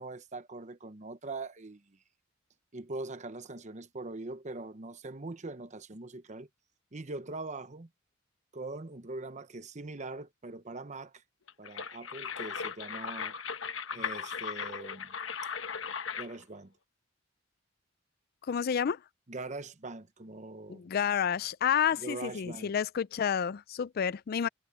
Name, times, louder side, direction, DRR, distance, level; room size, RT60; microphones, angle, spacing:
voice 1, 0.0-2.0 2.7-6.5 6.9-7.9 8.5-11.1 11.6-13.4 13.9-15.1 16.2-16.7 19.3-20.9 22.0-22.7, right 2 dB, 40° right, 0.9 m, -42 dB
sound 1, 11.5-16.4, left 6 dB, 80° left, 1.2 m, -37 dB
voice 2, 18.5-19.0 20.7-24.5, left 8 dB, 50° left, 0.4 m, -30 dB
head